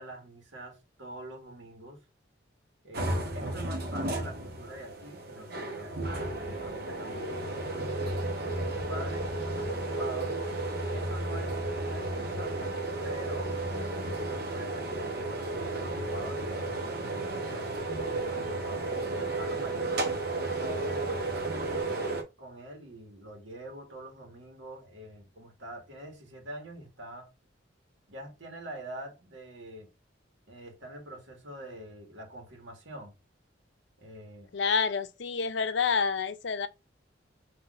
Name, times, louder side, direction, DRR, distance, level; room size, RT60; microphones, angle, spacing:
voice 1, 0.0-2.0 2.8-6.0 6.3-10.3 10.9-12.5 13.0-13.5 14.3-17.3 17.9-20.1 20.6-27.3 28.1-29.9 30.5-33.1 34.0-34.5, right 1 dB, 75° right, 1.8 m, -45 dB
sound 1, 2.9-22.2, right 2 dB, 55° right, 1.1 m, -33 dB
voice 2, 34.5-36.7, left 5 dB, 65° left, 0.5 m, -28 dB
5.8 x 3.0 x 2.5 m
head